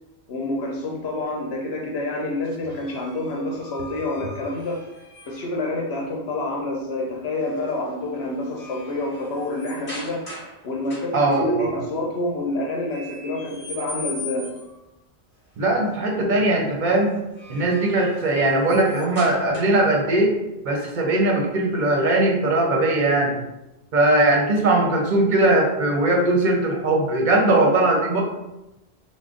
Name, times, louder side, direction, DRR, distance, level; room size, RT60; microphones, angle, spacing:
voice 1, 0.3-4.8 5.3-10.2 10.6-14.5, left 2 dB, 75° left, -2 dB, 0.9 m, -28 dB
sound 1, 2.7-5.6 7.4-7.7 8.1-10.6 10.9-11.4 12.9-14.8 17.1-20.0, left 2 dB, 45° left, 1.4 m, -40 dB
voice 2, 11.1-11.7 15.6-17.2 17.5-20.4 20.6-23.3 23.9-28.2, right 2 dB, 55° right, 0 dB, 0.7 m, -20 dB
3.6 x 2.0 x 3.6 m, 0.96 s
omnidirectional pair, 1.1 m